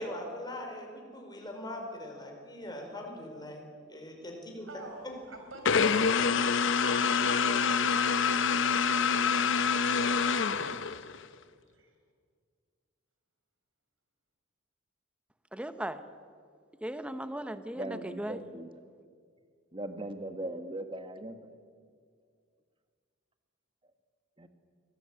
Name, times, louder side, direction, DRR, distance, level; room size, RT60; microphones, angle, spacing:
voice 1, 0.0-4.7, left 1 dB, 20° left, 1 dB, 4.9 m, -41 dB
voice 2, 4.6-10.7 11.7-11.9, right 1 dB, 75° right, 4 dB, 5.1 m, -47 dB
sound 1, 5.7-11.2, left 6 dB, 70° left, 0.8 m, -26 dB
voice 3, 15.5-16.0 16.8-18.4, right 1 dB, 5° right, 10 dB, 1.0 m, -37 dB
voice 4, 17.4-18.7 19.7-21.5 24.4-24.5, right 1 dB, 25° right, 8 dB, 1.6 m, -39 dB
24.0 x 18.0 x 8.8 m, 2.1 s
head